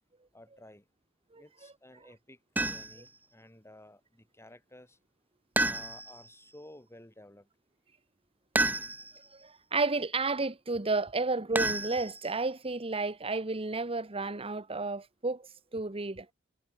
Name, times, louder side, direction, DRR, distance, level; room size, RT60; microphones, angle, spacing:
voice 1, 0.3-0.9 1.3-5.0 5.6-7.5, left 1 dB, 15° left, 7.4 m, -54 dB
sound 1, 2.6-3.1 5.6-6.3 8.5-9.3 11.5-12.4, right 2 dB, 10° right, 0.5 m, -31 dB
voice 2, 9.4-16.3, right 3 dB, 30° right, 1.2 m, -32 dB
head